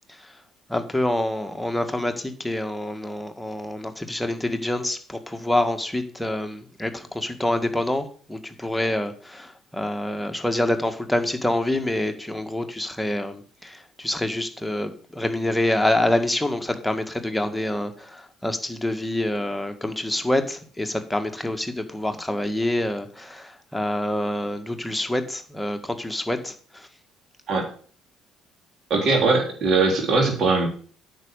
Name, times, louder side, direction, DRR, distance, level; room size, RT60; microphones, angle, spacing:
voice 1, 0.7-26.9, left 1 dB, 5° left, 6 dB, 1.8 m, -26 dB
voice 2, 28.9-30.7, right 3 dB, 50° right, 2 dB, 3.6 m, -20 dB
9.4 x 6.6 x 6.8 m, 0.43 s
figure-of-eight pair, 50°, 0 cm